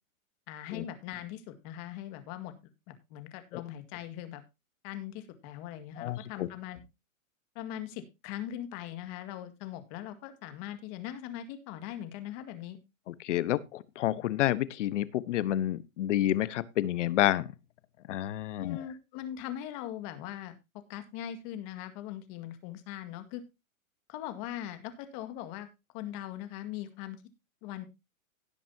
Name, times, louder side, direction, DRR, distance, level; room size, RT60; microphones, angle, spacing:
voice 1, 0.5-2.5 2.9-4.4 4.8-6.8 7.6-12.8 18.6-20.5 20.9-23.4 24.1-25.7 25.9-27.2 27.6-27.8, left 11 dB, 35° left, 2.0 m, -40 dB
voice 2, 6.0-6.5 13.1-17.5 18.1-18.8, left 13 dB, 60° left, 1.1 m, -29 dB
17.0 x 7.6 x 2.8 m
hypercardioid pair, 150°, 41 cm